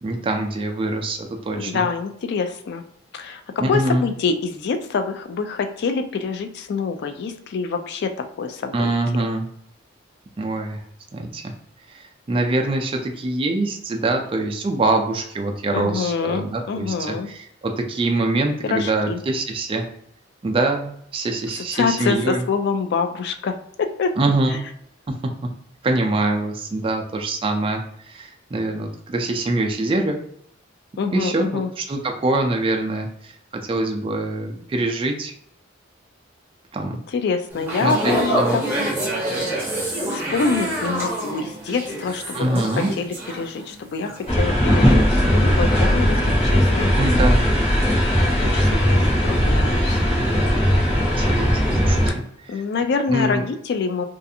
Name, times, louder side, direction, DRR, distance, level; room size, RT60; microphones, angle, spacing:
voice 1, 0.0-1.2 1.5-1.9 3.6-4.0 8.7-9.5 10.4-10.8 11.1-11.4 11.9-19.8 20.4-22.4 24.2-24.6 25.1-25.2 25.8-27.8 28.1-30.2 31.1-33.3 33.7-35.3 36.7-37.0 37.8-38.6 42.3-42.9 47.0-47.4 51.2-52.0 52.5-52.6 53.1-53.4, right 2 dB, 25° right, 3 dB, 0.3 m, -24 dB
voice 2, 1.6-2.8 3.1-3.4 3.7-8.9 15.7-17.3 18.6-19.2 21.7-23.6 24.0-24.2 24.5-24.6 31.0-31.7 37.1-38.9 39.5-46.9 48.4-50.0 52.5-54.0, left 5 dB, 55° left, 8 dB, 0.3 m, -26 dB
sound 1, 37.5-43.8 44.0-44.3, right 1 dB, 10° right, 0.7 m, -26 dB
sound 2, 44.3-52.1, equal, 35° left, 0.9 m, -18 dB
2.5 x 2.4 x 2.6 m, 0.69 s
head